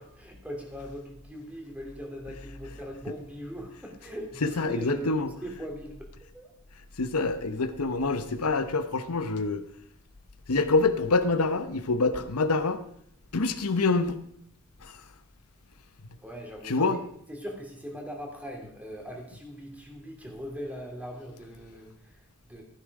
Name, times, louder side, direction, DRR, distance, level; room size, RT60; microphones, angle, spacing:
voice 1, 0.0-6.5 16.2-17.0 17.3-22.6, equal, 5° right, 1 dB, 2.8 m, -40 dB
voice 2, 4.4-5.3 7.0-9.6 10.5-12.8 13.3-14.2 14.8-15.0 16.6-17.0, left 3 dB, 85° left, 10 dB, 1.0 m, -26 dB
15.0 x 10.0 x 4.9 m, 0.69 s
head